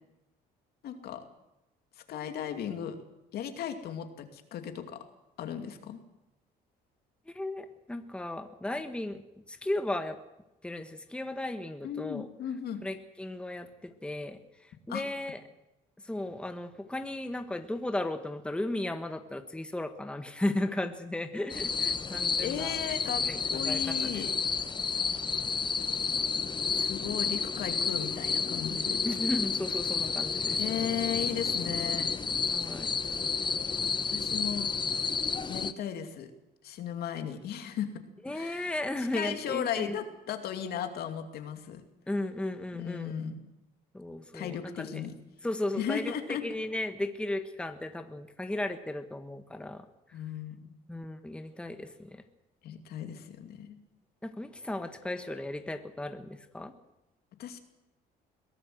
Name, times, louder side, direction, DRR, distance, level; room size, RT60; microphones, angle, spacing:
voice 1, 0.8-1.2 2.0-3.0 3.3-5.0 5.4-6.0 8.7-8.8 11.8-12.9 14.9-15.0 22.4-23.2 23.5-24.3 26.7-29.0 30.6-32.1 34.1-34.7 35.5-36.3 36.6-38.0 38.3-41.8 42.7-43.5 44.3-45.1 45.7-46.4 50.1-50.7 52.6-53.8 57.4-57.6, left 9 dB, 70° left, 6 dB, 2.6 m, -36 dB
voice 2, 7.3-10.2 10.6-12.3 12.8-15.4 16.0-22.7 23.2-24.2 29.0-30.8 32.5-32.9 38.2-40.0 42.1-43.1 43.9-45.0 45.4-50.2 50.9-52.2 54.2-56.7, left 1 dB, 5° left, 7 dB, 1.4 m, -35 dB
sound 1, 21.5-35.7, left 5 dB, 25° left, 1.0 m, -31 dB
22.0 x 17.5 x 7.9 m, 0.94 s
cardioid pair, 110°, 17 cm